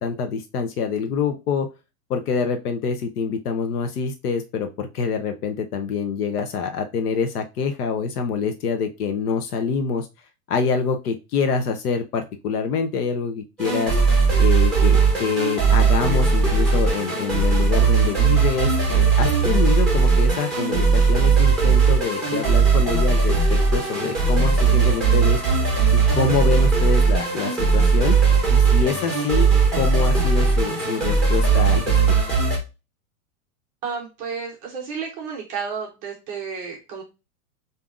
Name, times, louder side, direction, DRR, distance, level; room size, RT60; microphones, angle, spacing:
voice 1, 0.0-1.7 2.1-10.1 10.5-14.0 14.4-28.2 28.5-29.5 29.7-32.0, left 5 dB, 75° left, 6 dB, 0.8 m, -26 dB
sound 1, 13.6-32.6, right 5 dB, ahead, 0.9 m, -18 dB
voice 2, 33.8-37.0, right 5 dB, 20° right, 0 dB, 0.5 m, -31 dB
7.1 x 2.8 x 2.5 m, 0.28 s
supercardioid pair, 160°, 45 cm